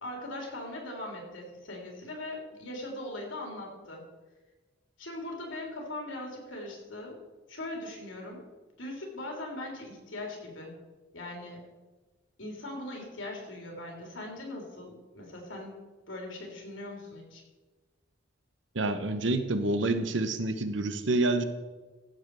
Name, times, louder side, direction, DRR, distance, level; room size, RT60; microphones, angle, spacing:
voice 1, 0.0-4.0 5.0-7.2 7.5-8.5 8.8-10.7 11.1-11.6 12.4-15.8 16.1-17.4, left 1 dB, 85° left, 0 dB, 3.6 m, -40 dB
voice 2, 18.7-21.4, right 2 dB, 70° right, 9 dB, 1.0 m, -28 dB
15.0 x 7.6 x 4.8 m, 1.2 s
head